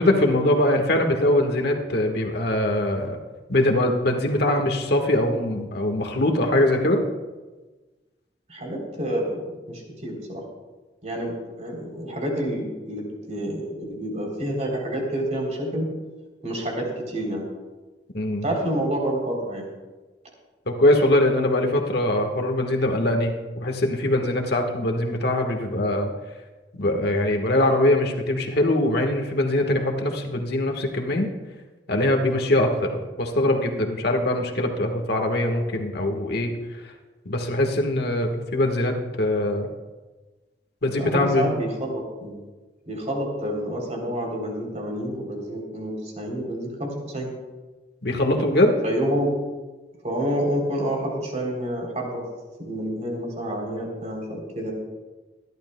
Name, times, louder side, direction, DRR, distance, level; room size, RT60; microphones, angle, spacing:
voice 1, 0.0-3.2 3.5-7.0 18.1-18.5 20.7-26.1 26.8-31.3 31.9-36.5 36.8-36.9 37.2-39.7 40.8-41.5 48.0-48.7, left 1 dB, 65° left, 3 dB, 1.4 m, -22 dB
voice 2, 8.5-10.4 11.0-15.9 16.4-17.4 18.4-19.6 40.9-42.4 42.8-47.3 48.8-49.3 50.0-52.2 52.6-54.7, right 1 dB, 40° right, -1 dB, 3.3 m, -28 dB
24.5 x 11.5 x 2.2 m, 1.2 s
head